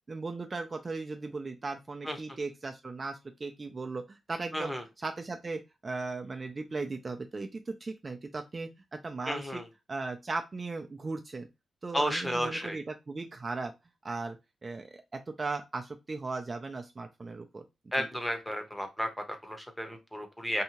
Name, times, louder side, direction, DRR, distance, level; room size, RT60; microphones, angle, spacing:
voice 1, 0.1-4.7 5.0-9.6 9.9-11.5 11.8-13.7 14.0-14.4 14.6-17.6 18.0-18.1, right 3 dB, 35° right, 4 dB, 0.4 m, -37 dB
voice 2, 4.5-4.8 9.3-9.7 11.9-12.8 17.9-20.6, equal, 10° left, 6 dB, 0.8 m, -33 dB
2.7 x 2.2 x 2.9 m, 0.23 s
cardioid pair, 70°, 0 cm